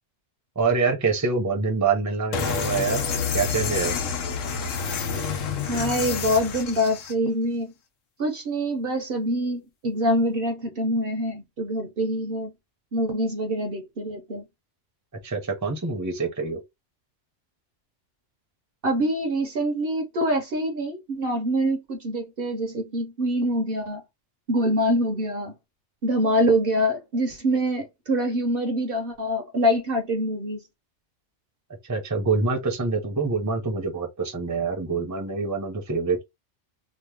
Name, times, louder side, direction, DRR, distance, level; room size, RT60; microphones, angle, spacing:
voice 1, 0.6-3.0 3.3-4.0 15.2-16.6 31.8-36.2, right 4 dB, 15° right, 0.7 m, -25 dB
sound 1, 2.3-7.1, left 6 dB, 90° left, 1.1 m, -28 dB
voice 2, 2.7-3.3 5.7-7.7 8.2-12.5 12.9-14.4 18.8-24.0 24.5-25.5 26.0-30.6, equal, 55° right, 0.9 m, -25 dB
3.0 x 2.1 x 3.4 m
omnidirectional pair, 1.3 m